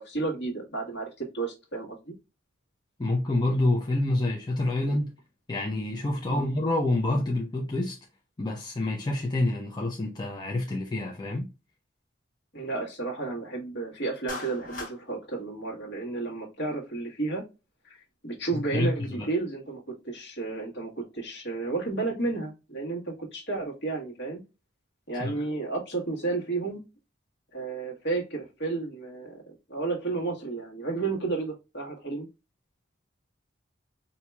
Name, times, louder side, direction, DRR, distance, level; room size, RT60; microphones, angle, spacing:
voice 1, 0.0-2.1 4.9-5.0 6.3-6.5 12.5-17.4 17.8-18.0 18.2-24.4 25.1-26.8 27.5-32.3, right 3 dB, 60° left, 1.4 m, -32 dB
voice 2, 3.0-5.1 5.5-8.0 8.4-11.5 18.5-19.3 25.2-25.4, left 2 dB, 20° left, 0.5 m, -27 dB
Clapping, 14.3-15.0, left 3 dB, 45° left, 1.1 m, -37 dB
4.3 x 2.7 x 2.3 m
head